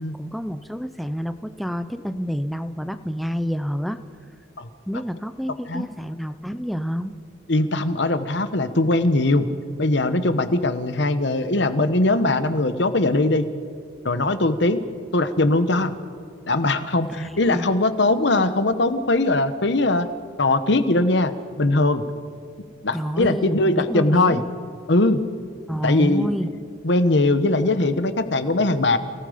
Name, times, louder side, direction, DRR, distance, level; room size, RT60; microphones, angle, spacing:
voice 1, 0.1-4.0 4.9-7.1 17.1-17.7 22.9-24.4 25.7-26.5, equal, ahead, 10 dB, 0.6 m, -28 dB
voice 2, 7.5-9.5 9.8-13.4 14.0-14.8 15.1-15.9 16.5-20.1 20.4-21.3 21.6-22.0 22.8-24.4 24.9-25.2 25.8-26.3 26.8-29.0, left 2 dB, 60° left, 11 dB, 1.1 m, -20 dB
28.5 x 18.5 x 5.1 m, 2.2 s
head